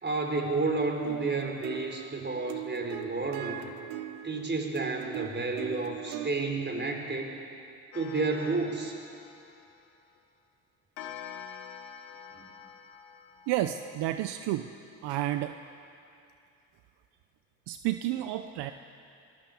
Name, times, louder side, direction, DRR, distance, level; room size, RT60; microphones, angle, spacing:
voice 1, 0.0-3.6 4.2-7.3 7.9-9.0 12.3-12.5, right 3 dB, 25° right, 3 dB, 4.5 m, -31 dB
sound 1, 1.0-6.3, right 12 dB, 85° right, 1.2 m, -40 dB
Clock, 7.9-10.2 11.0-14.4, left 8 dB, 70° left, 2.1 m, -47 dB
voice 2, 13.5-14.7 15.0-15.5 17.7-18.7, right 13 dB, 70° right, 9 dB, 0.9 m, -30 dB
23.5 x 18.5 x 7.3 m, 2.5 s
hypercardioid pair, 65°, 42 cm